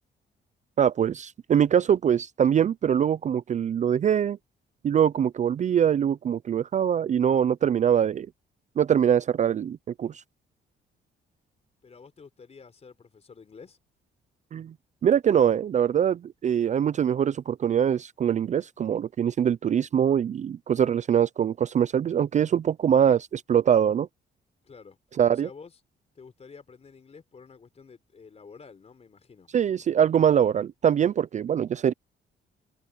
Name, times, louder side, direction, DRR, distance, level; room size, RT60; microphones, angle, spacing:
voice 1, 0.8-4.4 4.8-8.3 8.8-10.2 14.5-14.7 15.0-24.1 25.2-25.5 29.5-31.9, right 9 dB, 40° right, 0.4 m, -23 dB
voice 2, 11.8-13.8 24.6-25.0 25.3-25.8 26.1-29.6, left 5 dB, 35° left, 3.9 m, -49 dB
cardioid pair, 120°, 19 cm